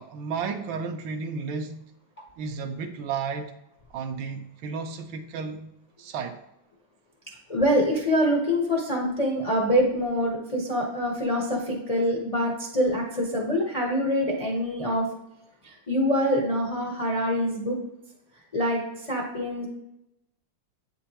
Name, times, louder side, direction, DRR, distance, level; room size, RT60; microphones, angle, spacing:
voice 1, 0.0-1.9 2.4-3.5 3.9-5.7 6.0-6.4, right 5 dB, 75° right, 1.3 m, -33 dB
voice 2, 7.5-15.1 15.6-17.8 18.5-19.7, equal, 65° left, 0.3 m, -25 dB
8.1 x 4.4 x 2.9 m
omnidirectional pair, 2.3 m